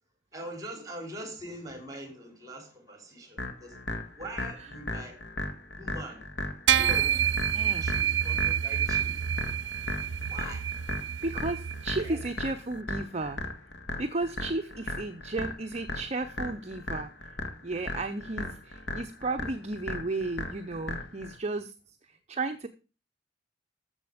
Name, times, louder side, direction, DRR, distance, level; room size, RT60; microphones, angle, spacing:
voice 1, 0.3-3.8 4.2-5.2 5.7-6.2 6.8-7.3 7.5-9.3 10.3-10.6 12.0-12.2, right 1 dB, 20° right, 3.3 m, -42 dB
sound 1, 3.4-21.4, left 1 dB, 70° left, 1.9 m, -37 dB
sound 2, 6.7-12.3, right 9 dB, 75° right, 0.5 m, -28 dB
voice 2, 7.5-7.9 11.2-13.4 14.0-17.1 17.6-21.7 22.0-22.7, right 2 dB, 35° right, 0.7 m, -34 dB
13.5 x 7.0 x 5.1 m
head